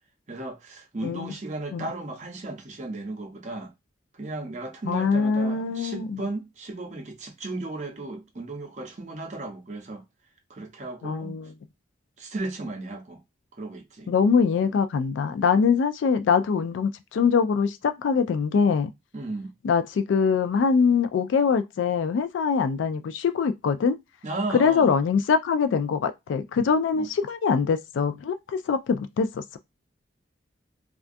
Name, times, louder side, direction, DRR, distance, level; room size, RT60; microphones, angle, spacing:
voice 1, 0.3-3.7 4.1-10.0 10.5-11.4 12.2-13.2 13.6-14.1 19.1-19.5 24.2-24.9 26.9-27.1, right 2 dB, 40° right, 0.6 m, -35 dB
voice 2, 1.0-1.3 1.7-1.9 4.9-6.3 11.0-11.5 14.1-18.9 19.6-24.0 24.5-29.6, left 5 dB, 80° left, 0.3 m, -23 dB
2.4 x 2.2 x 2.5 m
head